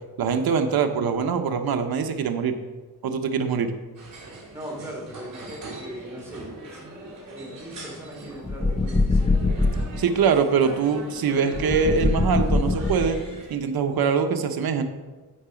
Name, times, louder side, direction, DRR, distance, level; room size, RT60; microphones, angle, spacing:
voice 1, 0.2-2.6 3.0-3.7 10.0-13.2 13.5-14.8, right 6 dB, 85° right, 6 dB, 1.0 m, -23 dB
sound 1, 3.9-13.5, right 2 dB, 60° right, 3.4 m, -41 dB
voice 2, 4.5-9.4, equal, 10° right, -3 dB, 3.2 m, -40 dB
sound 2, 8.4-10.0 11.5-13.4, left 2 dB, 15° left, 0.6 m, -23 dB
14.5 x 5.8 x 5.1 m, 1.3 s
wide cardioid pair, 130°, 35 cm